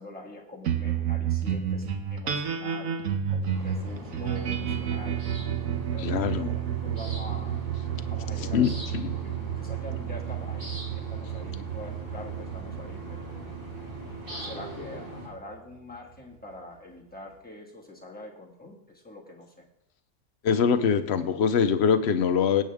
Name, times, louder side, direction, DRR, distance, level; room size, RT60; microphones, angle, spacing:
voice 1, 0.0-2.9 3.3-5.2 5.9-7.6 8.1-13.4 14.4-19.5, left 2 dB, 5° left, -2 dB, 1.8 m, -44 dB
sound 1, 0.6-15.3, right 9 dB, 85° right, 1.4 m, -31 dB
sound 2, 3.5-15.3, equal, 40° right, 2.6 m, -41 dB
voice 2, 6.0-6.5 8.5-9.1 20.4-22.6, left 7 dB, 60° left, 11 dB, 0.9 m, -23 dB
17.0 x 8.5 x 3.6 m, 0.86 s
omnidirectional pair, 1.4 m